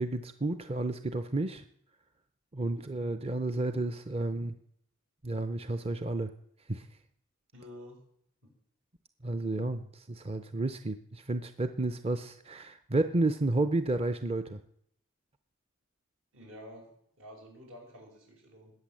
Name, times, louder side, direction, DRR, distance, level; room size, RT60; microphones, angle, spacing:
voice 1, 0.0-1.6 2.5-4.6 5.2-6.3 6.7-6.9 9.2-14.6, right 2 dB, 30° right, 10 dB, 0.6 m, -31 dB
voice 2, 7.5-8.0 8.4-8.5 16.3-16.9 17.2-18.7, equal, 75° right, 0 dB, 6.3 m, -50 dB
20.5 x 8.6 x 7.6 m, 0.70 s
head